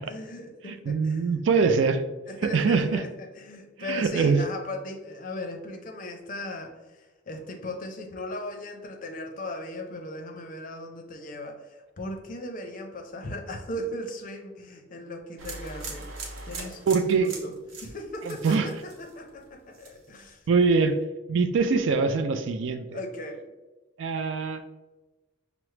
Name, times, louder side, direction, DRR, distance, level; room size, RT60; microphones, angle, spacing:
voice 1, 0.0-1.2 2.3-16.1 16.4-17.5 17.8-20.5 22.9-23.4, left 1 dB, 40° left, 3 dB, 0.5 m, -38 dB
voice 2, 0.7-2.0 2.4-3.0 3.8-4.4 16.9-17.3 18.3-18.7 20.5-21.0 21.3-22.9 24.0-24.6, right 5 dB, 65° right, 9 dB, 0.3 m, -23 dB
sound 1, 15.4-19.4 19.7-20.2, right 3 dB, 85° right, 0.8 m, -40 dB
5.7 x 2.0 x 3.1 m, 1.1 s
head